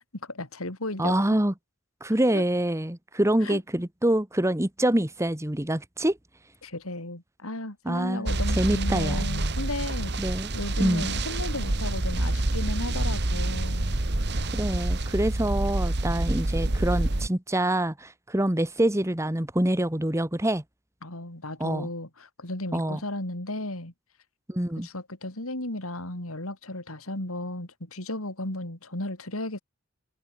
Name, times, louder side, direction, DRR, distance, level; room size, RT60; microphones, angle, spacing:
voice 1, 0.2-1.1 2.3-2.4 3.4-3.6 6.6-10.1 10.5-14.0 21.0-23.9 24.8-29.6, left 1 dB, 85° left, 5.6 m, -34 dB
voice 2, 1.0-1.5 2.0-6.2 7.8-8.3 8.6-9.3 10.2-10.5 10.8-11.1 14.5-20.6 21.6-21.9 22.7-23.0 24.5-24.9, right 1 dB, 15° right, 1.4 m, -26 dB
sound 1, 8.3-17.3, right 2 dB, 55° right, 1.6 m, -27 dB
head